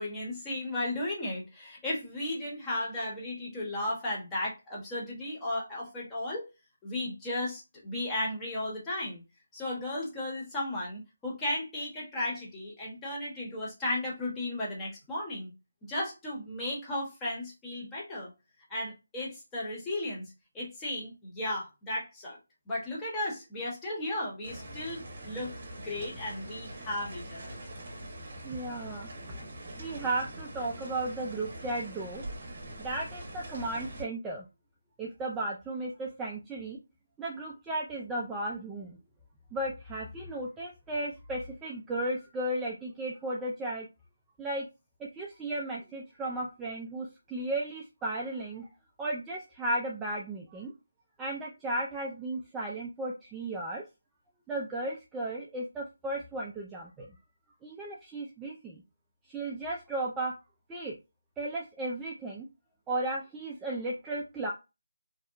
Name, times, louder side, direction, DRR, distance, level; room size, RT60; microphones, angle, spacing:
voice 1, 0.0-6.5 6.8-9.2 9.5-15.5 15.8-18.3 18.7-20.2 20.5-22.4 22.7-27.6, left 1 dB, 10° left, -5 dB, 0.9 m, -35 dB
sound 1, 24.4-34.0, right 1 dB, 50° right, 0.8 m, -43 dB
voice 2, 28.4-29.4 29.8-32.2 32.8-34.5 35.0-36.8 37.2-39.0 39.5-43.9 44.4-44.7 45.0-48.7 49.0-50.7 51.2-53.8 54.5-57.2 57.6-58.8 59.3-60.3 60.7-61.0 61.4-62.5 62.9-64.5, right 1 dB, 10° right, -3 dB, 0.3 m, -35 dB
2.7 x 2.0 x 2.4 m, 0.26 s
figure-of-eight pair, 160°, 0 cm